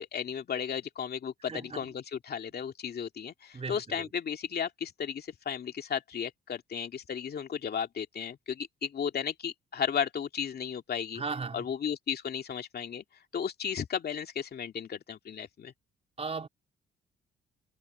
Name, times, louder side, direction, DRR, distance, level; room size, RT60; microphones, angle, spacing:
voice 1, 0.0-11.2 11.5-13.0 13.3-15.7, left 7 dB, 55° left, 2.5 m, -34 dB
voice 2, 1.5-1.9 3.5-4.1 11.1-11.7 16.2-16.5, right 4 dB, 30° right, 3.2 m, -37 dB
cardioid pair, 90°, 20 cm